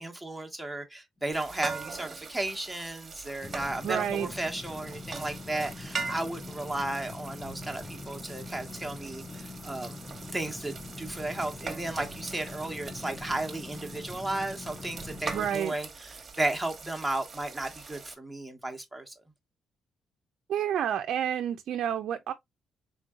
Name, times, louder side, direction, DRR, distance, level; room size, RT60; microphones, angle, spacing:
voice 1, 0.0-10.0 10.3-19.1, right 2 dB, 5° right, 1.1 m, -34 dB
sound 1, 1.3-18.1, right 4 dB, 40° right, 1.1 m, -42 dB
sound 2, 3.4-15.6, left 3 dB, 30° left, 0.5 m, -43 dB
voice 2, 3.8-4.3 15.3-15.7 20.5-22.3, right 9 dB, 75° right, 0.4 m, -29 dB
3.8 x 3.7 x 2.3 m
cardioid pair, 80°, 0 cm